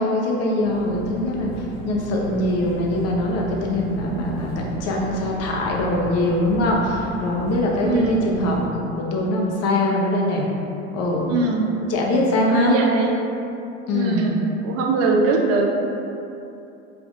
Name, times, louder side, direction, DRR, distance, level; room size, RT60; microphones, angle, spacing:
voice 1, 0.0-10.4 10.9-11.5 11.8-12.8 13.9-14.4, left 1 dB, 45° left, -2 dB, 0.8 m, -22 dB
sound 1, 0.6-8.6, right 2 dB, 90° left, 1.0 m, -36 dB
voice 2, 7.8-8.2 11.3-11.7 12.5-13.1 13.9-15.9, right 3 dB, 45° right, 1 dB, 0.5 m, -21 dB
5.0 x 2.5 x 2.5 m, 2.8 s
hypercardioid pair, 90°, 34 cm